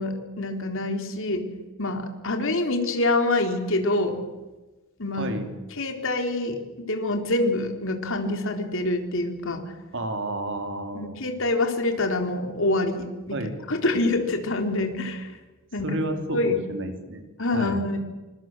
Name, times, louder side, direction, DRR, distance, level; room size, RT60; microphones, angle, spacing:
voice 1, 0.0-1.5 1.8-4.2 5.0-5.3 5.8-9.7 10.9-15.4 15.7-16.0 16.3-16.6 17.4-18.0, left 2 dB, 65° left, 5 dB, 4.0 m, -26 dB
voice 2, 5.2-5.5 9.9-11.2 13.3-13.6 15.8-17.3 17.5-17.9, right 1 dB, 60° right, 6 dB, 3.7 m, -31 dB
27.5 x 25.5 x 7.6 m, 1.2 s
head